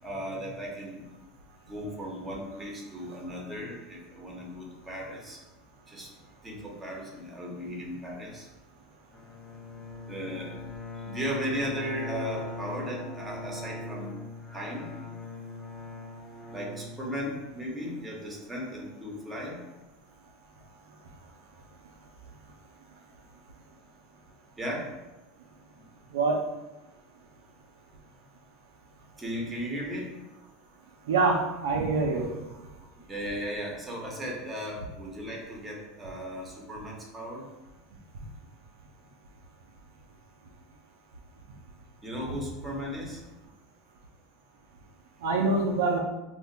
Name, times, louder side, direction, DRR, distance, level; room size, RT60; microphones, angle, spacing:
voice 1, 0.0-1.0 1.7-5.4 5.9-6.1 6.4-8.5 10.1-10.6 11.0-14.1 14.5-14.9 16.5-19.6 24.6-24.9 29.2-30.1 33.1-37.4 42.0-43.2, equal, 15° right, -2 dB, 0.9 m, -36 dB
Bowed string instrument, 9.1-17.6, left 3 dB, 15° left, 0.7 m, -41 dB
voice 2, 31.1-32.3 45.2-46.0, right 3 dB, 85° right, 1 dB, 0.4 m, -25 dB
2.5 x 2.1 x 3.8 m, 1.0 s
supercardioid pair, 100°, 0 cm